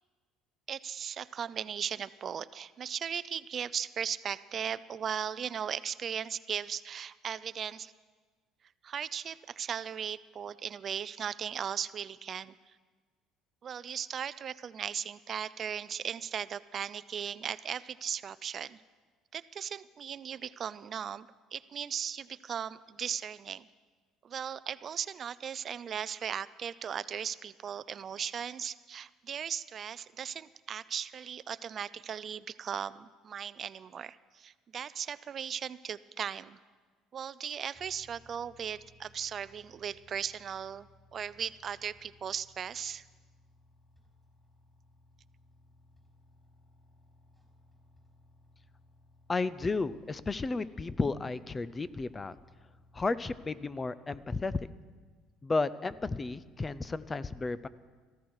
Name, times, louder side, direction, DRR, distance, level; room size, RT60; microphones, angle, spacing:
voice 1, 0.7-7.9 8.8-12.8 13.6-18.8 19.3-23.7 24.2-36.6 37.1-43.0, right 8 dB, 40° right, 17 dB, 0.4 m, -37 dB
sound 1, 37.7-53.8, left 1 dB, ahead, 4.7 m, -62 dB
voice 2, 49.3-52.4 52.9-54.7 55.4-57.7, left 3 dB, 20° left, 17 dB, 0.5 m, -33 dB
18.0 x 14.5 x 4.7 m, 1.4 s
cardioid pair, 110°, 0 cm